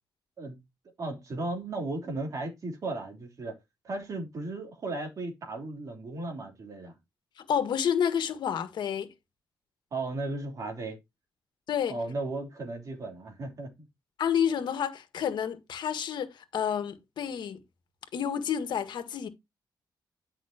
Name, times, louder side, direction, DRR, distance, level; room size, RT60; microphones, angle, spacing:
voice 1, 1.0-3.6 3.8-6.9 9.9-11.0 11.9-13.7, right 2 dB, 45° right, 3.5 m, -35 dB
voice 2, 7.4-9.1 11.7-12.0 14.2-17.6 18.1-19.3, left 8 dB, 75° left, 1.7 m, -29 dB
11.0 x 6.0 x 2.9 m
wide cardioid pair, 175°, 8 cm